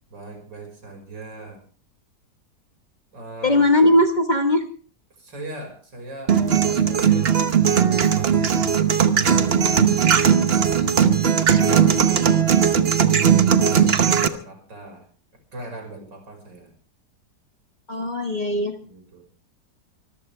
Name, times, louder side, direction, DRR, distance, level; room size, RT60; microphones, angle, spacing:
voice 1, 0.1-1.6 3.1-3.7 5.2-6.4 6.6-10.1 12.9-13.4 13.6-15.1 15.5-16.7 18.3-19.3, right 2 dB, 90° right, 3 dB, 6.1 m, -40 dB
voice 2, 3.4-4.6 17.9-18.8, left 1 dB, 25° left, 5 dB, 1.6 m, -19 dB
sound 1, 6.3-14.3, right 8 dB, 40° right, 1.0 m, -18 dB
24.5 x 14.0 x 3.4 m, 0.41 s
omnidirectional pair, 1.9 m